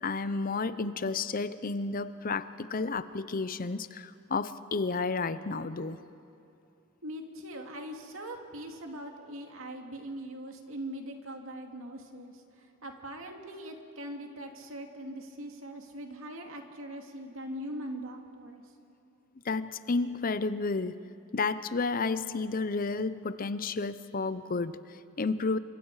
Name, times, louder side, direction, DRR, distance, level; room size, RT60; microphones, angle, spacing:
voice 1, 0.0-6.0 19.4-20.9 21.3-25.6, left 3 dB, 45° left, 14 dB, 0.7 m, -31 dB
voice 2, 7.0-18.6, right 1 dB, 85° right, 3 dB, 2.4 m, -41 dB
29.0 x 25.0 x 4.9 m, 2.7 s
head